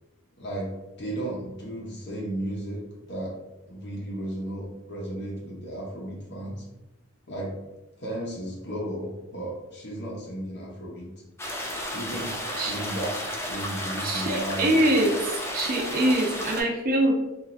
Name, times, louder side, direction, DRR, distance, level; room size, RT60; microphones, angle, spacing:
voice 1, 0.4-0.7 1.0-2.8 3.1-3.3 3.7-6.6 7.3-7.6 8.0-11.1 11.9-12.3 12.7-14.8, right 1 dB, 55° left, -4 dB, 0.7 m, -34 dB
sound 1, 11.4-16.6, equal, 10° left, 0.3 m, -33 dB
voice 2, 14.0-15.2 15.5-17.1, right 1 dB, 45° right, 1 dB, 0.6 m, -23 dB
2.9 x 2.4 x 2.5 m, 0.98 s
head